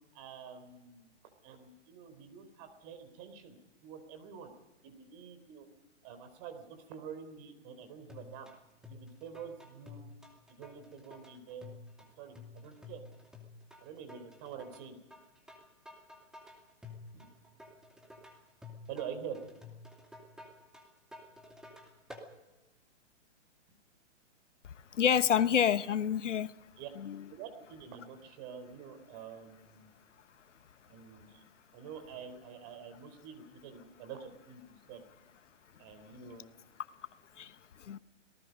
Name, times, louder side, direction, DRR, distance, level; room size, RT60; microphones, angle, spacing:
voice 1, 0.1-1.1 1.4-3.6 3.8-4.5 4.8-5.7 6.0-8.5 8.9-10.1 10.5-13.0 13.8-15.0 17.1-17.3 18.9-19.4 26.8-26.9 27.3-29.9 30.9-31.4 31.7-34.6 34.9-35.0 35.8-36.5, right 7 dB, 35° right, 8 dB, 3.9 m, -47 dB
sound 1, 8.1-22.3, left 3 dB, ahead, 2.4 m, -52 dB
voice 2, 25.0-26.5 27.0-27.2 37.4-37.5 37.9-38.0, left 8 dB, 80° left, 15 dB, 1.1 m, -27 dB
26.5 x 18.5 x 5.3 m, 1.0 s
hypercardioid pair, 145°, 36 cm